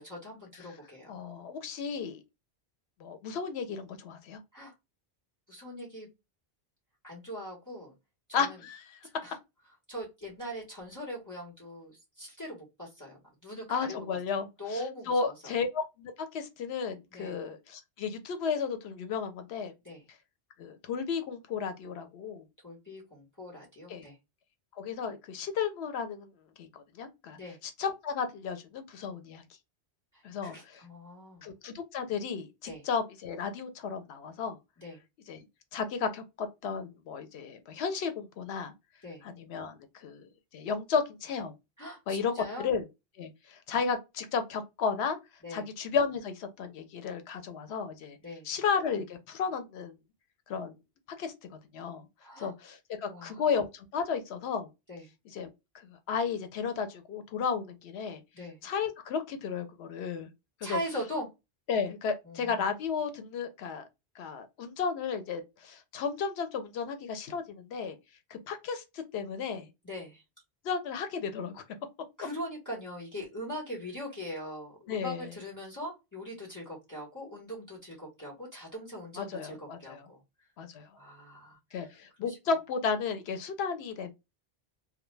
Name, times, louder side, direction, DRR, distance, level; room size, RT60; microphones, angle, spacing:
voice 1, 0.0-1.2 4.5-4.7 5.5-6.1 7.0-7.9 8.3-8.6 9.2-9.4 9.9-14.0 14.3-15.5 17.1-17.4 19.8-20.0 22.6-24.2 27.3-27.6 30.1-31.5 32.6-32.8 34.8-35.0 39.0-39.2 41.8-42.7 45.4-45.7 48.2-48.5 52.2-52.5 53.0-53.4 54.9-55.0 58.3-58.6 60.6-61.3 62.2-62.6 69.8-70.2 72.2-80.2 81.0-81.9 82.2-82.4, equal, 20° left, 1.0 m, -41 dB
voice 2, 1.1-2.2 3.0-4.4 8.3-9.1 13.7-19.7 20.6-22.4 23.9-24.1 24.7-26.3 26.6-27.4 27.6-29.4 30.2-30.8 31.4-34.6 35.3-35.4 35.7-38.7 39.2-41.5 42.1-42.8 43.2-45.2 45.5-48.2 48.4-49.9 50.5-50.7 51.2-51.3 51.7-52.1 52.4-54.7 55.3-55.5 55.7-58.2 58.6-60.3 60.6-60.8 61.7-63.8 64.2-68.0 68.3-69.7 70.6-71.6 74.9-75.3 79.2-80.1 80.6-80.9 81.7-84.1, left 5 dB, 85° left, 0.9 m, -33 dB
2.2 x 2.2 x 3.1 m
omnidirectional pair, 1.0 m